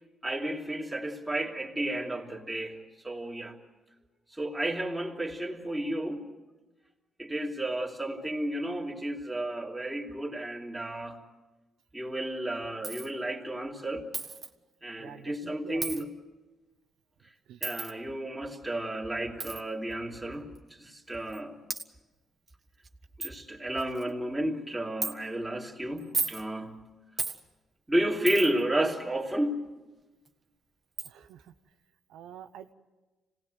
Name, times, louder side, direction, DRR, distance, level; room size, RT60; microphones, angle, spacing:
voice 1, 0.2-3.6 4.3-6.3 7.2-11.2 11.9-14.1 14.8-16.1 17.6-20.5 20.8-21.6 23.2-26.9 27.9-29.7, right 1 dB, 10° right, -1 dB, 3.1 m, -32 dB
Coin (dropping), 12.8-13.1 14.1-14.5 15.8-16.0 17.6-17.9 19.4-19.6 20.5-20.6 21.3-21.4 21.7-21.8 22.5-22.6 22.8-22.9 23.2-23.3 23.8-24.1 25.0-25.1 26.0-26.4 27.2-27.4 28.3-28.6 30.3-30.4 31.0-31.1, right 4 dB, 30° right, 1.6 m, -33 dB
voice 2, 15.0-16.1 17.5-17.7 31.0-31.5 32.1-32.7, right 9 dB, 85° right, 7 dB, 0.8 m, -47 dB
26.0 x 18.5 x 7.9 m, 1.2 s
cardioid pair, 90°, 0 cm